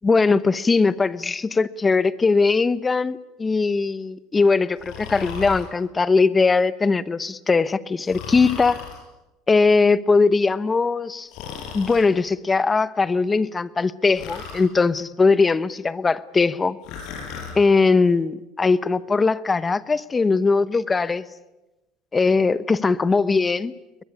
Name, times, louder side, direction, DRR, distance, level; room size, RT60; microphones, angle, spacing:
voice 1, 0.0-8.8 9.5-11.3 11.7-16.8 17.5-21.2 22.1-23.7, left 4 dB, 15° left, 0.9 m, -20 dB
Breathing, 4.8-5.7 8.1-9.0 11.3-12.1 14.2-14.7 16.8-17.6, left 6 dB, 60° left, 5.8 m, -35 dB
22.0 x 21.0 x 9.8 m
supercardioid pair, 130°, 0 cm